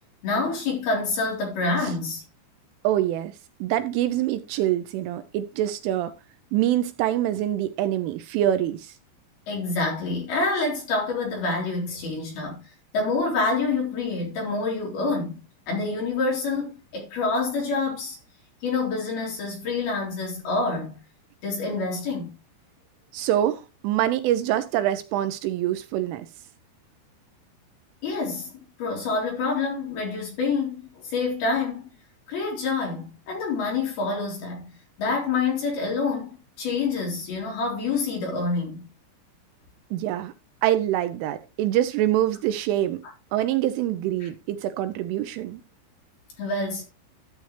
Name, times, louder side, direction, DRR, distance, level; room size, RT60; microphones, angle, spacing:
voice 1, 0.2-2.2 9.5-12.6 12.9-15.4 15.7-18.2 18.6-21.0 21.4-22.3 28.0-28.5 28.8-31.8 32.3-34.7 35.0-38.9 44.2-44.3 46.4-46.8, left 3 dB, 50° left, 5.4 m, -27 dB
voice 2, 2.8-3.3 3.6-6.1 6.5-8.9 23.1-26.3 39.9-40.3 40.6-43.0 43.3-45.6, right 12 dB, 80° right, 3.0 m, -25 dB
13.5 x 7.9 x 3.2 m
omnidirectional pair, 5.9 m